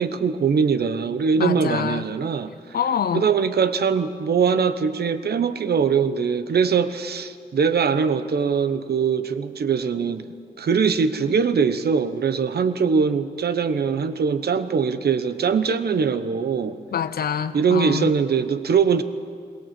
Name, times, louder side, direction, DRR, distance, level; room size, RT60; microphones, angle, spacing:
voice 1, 0.0-2.5 3.1-10.3 10.6-16.8 17.5-19.0, right 6 dB, 70° right, 11 dB, 1.0 m, -22 dB
voice 2, 1.4-2.0 2.7-3.3 16.9-18.1, left 8 dB, 65° left, 13 dB, 0.7 m, -25 dB
22.0 x 18.5 x 7.6 m, 2.3 s
wide cardioid pair, 160°, 17 cm